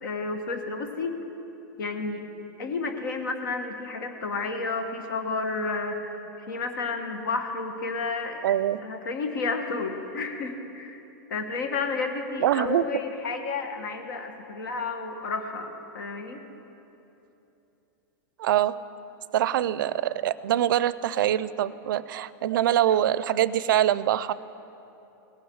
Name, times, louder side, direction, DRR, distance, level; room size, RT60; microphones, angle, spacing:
voice 1, 0.0-1.2 1.8-2.3 2.6-8.4 8.8-11.0 11.3-16.4, left 4 dB, 80° left, 6 dB, 1.5 m, -31 dB
voice 2, 8.4-8.8 12.4-12.9 18.4-18.8 19.3-24.3, right 11 dB, 85° right, 17 dB, 0.4 m, -24 dB
17.5 x 8.1 x 6.3 m, 3.0 s
supercardioid pair, 155°, 11 cm